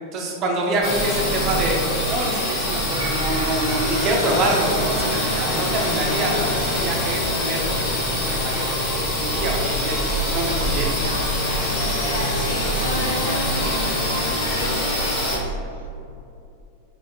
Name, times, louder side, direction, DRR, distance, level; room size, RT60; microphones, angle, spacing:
voice 1, 0.1-7.7 8.1-10.0 10.3-11.0, right 1 dB, 35° right, 0 dB, 0.8 m, -26 dB
sound 1, 0.8-15.4, equal, 35° left, 1.2 m, -24 dB
sound 2, 2.9-14.7, left 1 dB, 80° right, 1.0 m, -34 dB
voice 2, 10.9-15.8, left 1 dB, 70° left, -2 dB, 0.8 m, -34 dB
5.6 x 3.0 x 2.9 m, 2.6 s
figure-of-eight pair, 90°, 0 cm